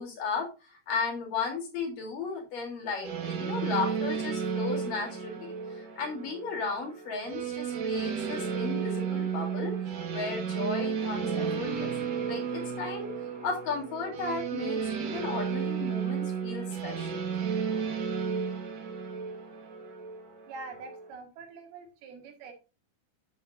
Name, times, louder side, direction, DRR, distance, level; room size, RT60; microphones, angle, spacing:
voice 1, 0.0-9.7 10.1-13.1 13.4-17.2, left 4 dB, 55° left, 0 dB, 4.6 m, -35 dB
sound 1, 3.0-21.1, right 6 dB, 55° right, 2.2 m, -33 dB
voice 2, 20.5-22.5, right 3 dB, 75° right, 4 dB, 3.6 m, -44 dB
10.5 x 9.1 x 2.6 m, 0.30 s
omnidirectional pair, 4.6 m